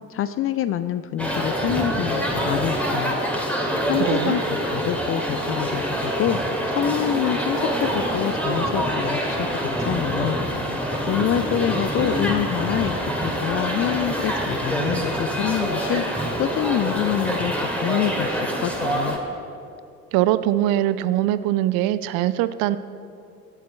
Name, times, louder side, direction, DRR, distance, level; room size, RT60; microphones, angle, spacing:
voice 1, 0.1-3.2 3.9-6.4 6.7-10.4 11.1-16.0 16.4-19.2, left 11 dB, 30° left, 13 dB, 0.4 m, -26 dB
sound 1, 1.2-19.2, equal, 5° left, 2.2 m, -25 dB
voice 2, 4.0-4.4 20.1-22.8, right 13 dB, 50° right, 14 dB, 0.6 m, -22 dB
22.0 x 7.3 x 4.2 m, 2.5 s
figure-of-eight pair, 55°, 46 cm